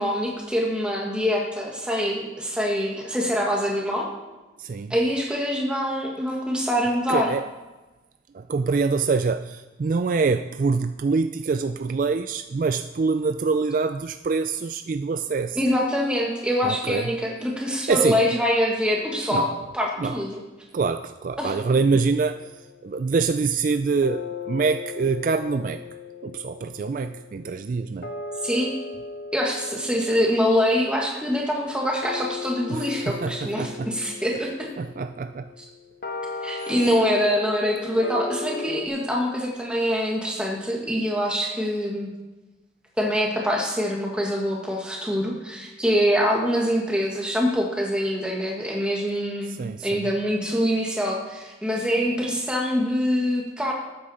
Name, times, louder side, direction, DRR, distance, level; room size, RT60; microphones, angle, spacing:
voice 1, 0.0-4.1 4.9-7.3 15.6-19.5 19.7-20.4 21.4-21.5 28.4-28.7 29.3-34.7 36.4-42.1 43.0-53.7, equal, 5° right, -1 dB, 1.7 m, -24 dB
voice 2, 4.6-4.9 7.1-7.4 8.3-15.6 16.6-17.1 17.9-18.2 19.3-19.6 20.0-20.2 20.7-22.4 22.8-25.8 26.2-28.1 32.7-33.9 34.8-35.5 36.6-36.7 49.5-50.0, right 4 dB, 45° right, 10 dB, 0.3 m, -25 dB
sound 1, 21.9-23.2 24.0-38.9, left 3 dB, 50° left, 1.0 m, -37 dB
12.5 x 8.6 x 4.3 m, 1.1 s
head